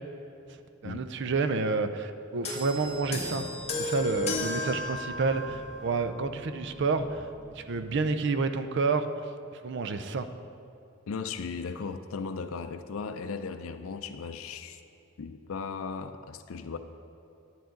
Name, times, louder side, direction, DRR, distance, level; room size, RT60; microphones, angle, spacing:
voice 1, 0.5-3.5 3.8-7.3 7.6-9.2 9.6-10.3, right 4 dB, 60° right, 9 dB, 0.5 m, -29 dB
sound 1, 2.4-6.0 6.9-7.1, left 2 dB, 30° left, 1.2 m, -34 dB
sound 2, 2.7-7.9, equal, 5° left, 0.7 m, -50 dB
voice 2, 11.1-14.8 15.2-16.8, left 5 dB, 85° left, 8 dB, 0.4 m, -37 dB
10.5 x 9.3 x 3.8 m, 2.7 s
head